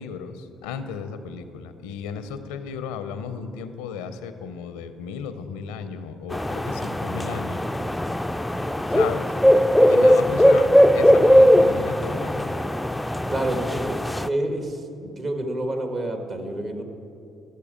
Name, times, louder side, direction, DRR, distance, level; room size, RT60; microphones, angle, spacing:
voice 1, 0.0-7.6 8.9-9.3 9.9-12.6, left 6 dB, 90° left, 10 dB, 0.6 m, -34 dB
sound 1, 6.3-14.3, equal, 10° left, 0.3 m, -19 dB
voice 2, 13.3-16.8, right 1 dB, 45° right, 5 dB, 1.4 m, -28 dB
13.5 x 6.6 x 5.1 m, 2.6 s
supercardioid pair, 60°, 0 cm